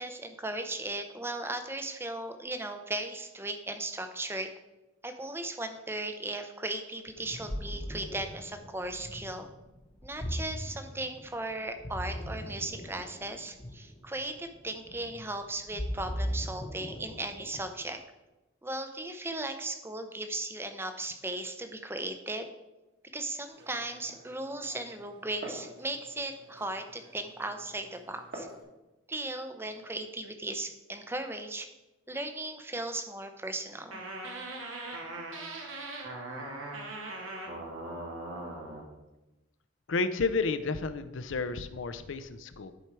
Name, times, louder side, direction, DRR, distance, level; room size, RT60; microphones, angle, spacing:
voice 1, 0.0-4.5 5.0-9.5 10.0-18.0 18.6-22.5 23.1-28.5 29.1-31.7 32.1-34.0, right 2 dB, 10° right, 7 dB, 0.6 m, -37 dB
Ocean, 7.1-17.8, equal, 25° left, 0.9 m, -39 dB
Glass, 23.5-28.6, right 1 dB, 55° right, 1.9 m, -48 dB
sound 1, 33.9-38.8, right 2 dB, 85° right, 1.9 m, -40 dB
voice 2, 39.9-42.7, left 4 dB, 75° left, 11 dB, 0.5 m, -31 dB
10.5 x 4.6 x 4.7 m, 1.0 s
head